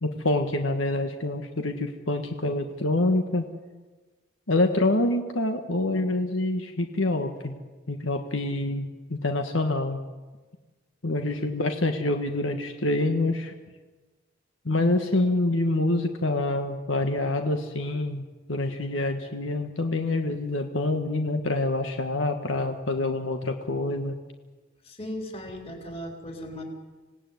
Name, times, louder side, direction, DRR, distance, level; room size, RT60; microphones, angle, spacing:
voice 1, 0.0-3.5 4.5-7.5 7.9-10.0 11.0-13.5 14.6-18.2 18.5-24.1, left 2 dB, 90° left, 5 dB, 1.6 m, -26 dB
voice 2, 11.2-11.6 24.8-26.6, equal, 30° left, 2 dB, 3.8 m, -38 dB
26.5 x 18.0 x 9.5 m, 1.3 s
head